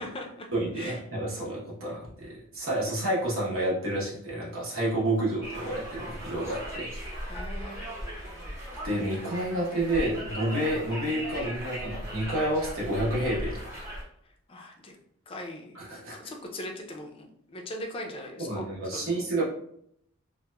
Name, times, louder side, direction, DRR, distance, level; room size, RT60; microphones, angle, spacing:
voice 1, 0.0-0.5 0.8-1.0 7.2-8.0 14.5-15.0 15.3-15.8 16.1-18.7 18.9-19.2, left 1 dB, 25° left, 2 dB, 0.3 m, -40 dB
voice 2, 0.5-6.9 8.8-13.6 15.7-16.2 18.4-19.4, right 1 dB, 65° right, -5 dB, 0.9 m, -29 dB
Conversation, 5.4-14.0, equal, 10° right, 0.7 m, -38 dB
2.8 x 2.0 x 2.2 m, 0.69 s
head